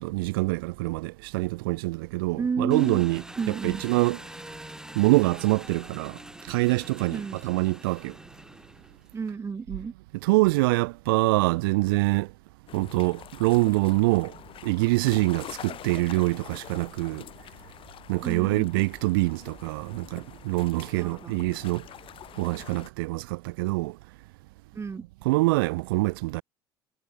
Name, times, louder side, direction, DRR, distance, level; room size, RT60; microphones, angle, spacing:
voice 1, 0.0-3.2 3.5-4.2 5.0-6.2 6.4-8.2 10.2-12.3 12.7-14.3 14.6-17.2 18.1-21.8 22.4-24.0 25.2-26.4, right 23 dB, 65° right, 0.4 m, -25 dB
voice 2, 2.4-3.0 3.4-3.8 7.1-7.4 9.1-9.9 18.2-18.7 20.9-21.3 24.7-25.0, right 5 dB, 20° right, 0.9 m, -31 dB
Engine, 2.7-9.2, right 1 dB, 5° right, 2.4 m, -44 dB
sound 1, 12.7-22.9, left 11 dB, 45° left, 3.9 m, -45 dB
figure-of-eight pair, 60°, 13 cm